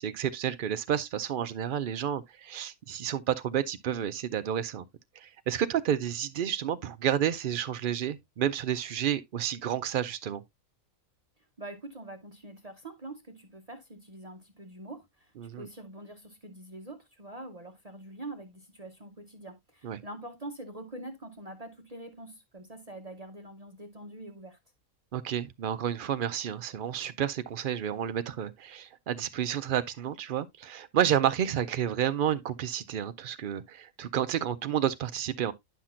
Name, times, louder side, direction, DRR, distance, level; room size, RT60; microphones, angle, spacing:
voice 1, 0.0-4.8 5.2-10.4 15.4-15.7 19.8-20.0 25.1-35.5, right 10 dB, 70° right, 0.5 m, -30 dB
voice 2, 11.6-24.6, right 1 dB, 35° right, 0.7 m, -44 dB
10.0 x 5.8 x 2.4 m
omnidirectional pair, 1.5 m